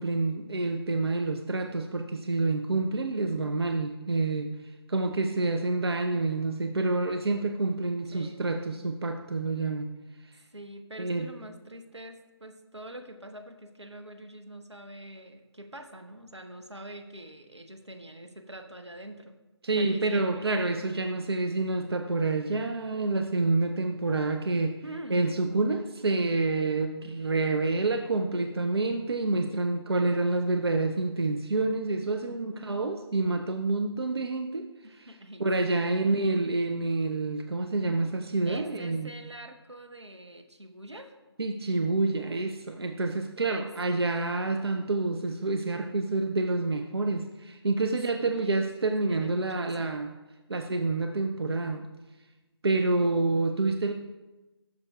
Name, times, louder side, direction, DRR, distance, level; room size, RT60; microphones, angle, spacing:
voice 1, 0.0-4.5 4.9-9.9 11.0-11.3 19.6-24.8 25.1-34.7 35.0-35.1 35.4-39.1 41.4-50.1 50.5-51.9 52.6-53.9, right 3 dB, 65° right, 5 dB, 0.6 m, -28 dB
voice 2, 8.1-8.4 10.5-19.3 19.7-20.5 24.8-25.2 32.2-33.0 34.8-36.2 38.5-41.3 43.4-43.7 48.1-50.0, right 1 dB, 90° right, 6 dB, 0.9 m, -45 dB
11.5 x 6.7 x 2.3 m, 1.1 s
figure-of-eight pair, 150°, 14 cm